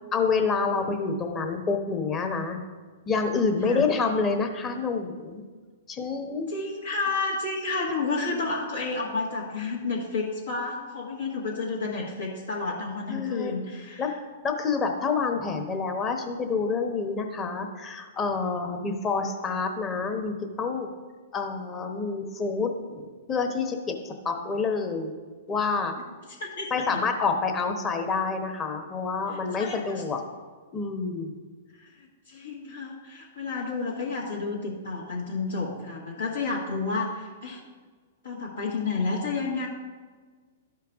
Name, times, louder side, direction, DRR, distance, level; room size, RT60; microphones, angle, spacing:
voice 1, 0.1-2.6 3.1-5.5 5.9-6.5 13.1-13.5 14.0-14.1 14.4-20.9 21.3-25.1 25.5-25.9 26.7-30.2 30.7-31.3, left 4 dB, 25° left, 4 dB, 1.1 m, -28 dB
voice 2, 6.5-14.0 26.4-26.9 29.6-29.8 31.8-37.6 38.2-39.7, left 3 dB, 80° left, -4 dB, 1.5 m, -31 dB
12.5 x 4.6 x 3.6 m, 1.5 s
hypercardioid pair, 120°, 0 cm